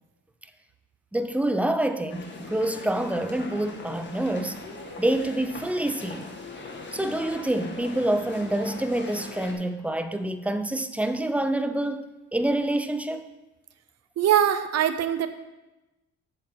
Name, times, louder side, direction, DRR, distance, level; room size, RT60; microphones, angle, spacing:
voice 1, 1.1-4.6 5.0-6.3 6.9-13.2, right 1 dB, 5° right, 0.6 m, -27 dB
sound 1, 2.1-9.5, left 3 dB, 40° left, 1.6 m, -40 dB
voice 2, 14.2-15.3, right 10 dB, 55° right, 0.7 m, -22 dB
7.5 x 7.4 x 4.4 m
cardioid pair, 90°, 30 cm